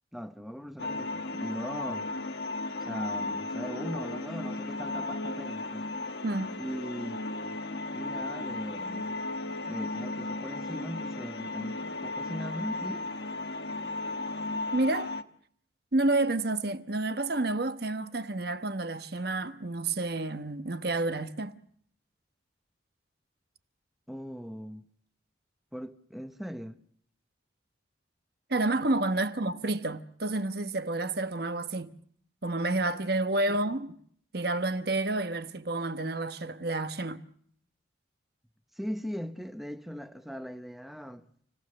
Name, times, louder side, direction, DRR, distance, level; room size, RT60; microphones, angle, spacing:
voice 1, 0.1-2.1 2.8-5.8 6.6-7.6 7.9-9.1 9.7-13.1 24.1-24.9 25.7-26.8 33.5-33.6 38.8-41.3, equal, ahead, 1.1 m, -39 dB
sound 1, 0.8-15.2, left 2 dB, 60° left, 1.2 m, -35 dB
voice 2, 14.7-15.1 15.9-21.6 28.5-32.0 32.4-33.9 34.3-37.2, right 2 dB, 55° right, 1.1 m, -29 dB
29.0 x 18.0 x 6.7 m
head